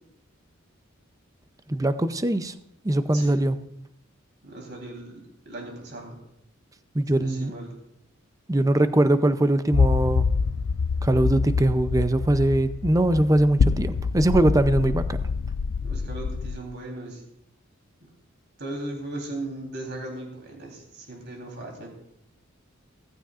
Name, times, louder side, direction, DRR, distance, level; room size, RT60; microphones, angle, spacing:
voice 1, 1.7-2.5 2.8-3.6 6.9-7.5 8.5-10.3 11.0-15.2, right 1 dB, 15° right, 11 dB, 0.5 m, -21 dB
voice 2, 4.4-6.2 7.1-7.7 15.8-17.2 18.6-21.9, right 2 dB, 55° right, 1 dB, 3.7 m, -37 dB
sound 1, 9.7-16.6, left 5 dB, 55° left, 0.4 m, -26 dB
15.5 x 15.0 x 2.5 m, 0.78 s
head